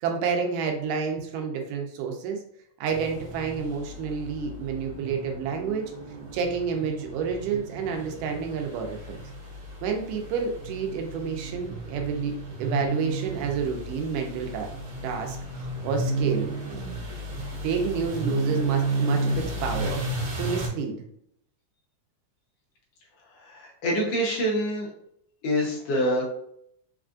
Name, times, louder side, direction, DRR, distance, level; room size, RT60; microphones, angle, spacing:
voice 1, 0.0-2.4 2.8-5.9 6.3-9.2 9.8-14.7 15.0-16.5 17.6-20.0 20.4-21.0, right 6 dB, 90° right, 3 dB, 2.2 m, -29 dB
sound 1, 2.9-20.7, right 2 dB, 70° right, 2.2 m, -33 dB
voice 2, 23.5-24.9 25.4-26.3, equal, 70° left, -3 dB, 1.6 m, -26 dB
5.2 x 2.4 x 2.4 m, 0.71 s
omnidirectional pair, 3.7 m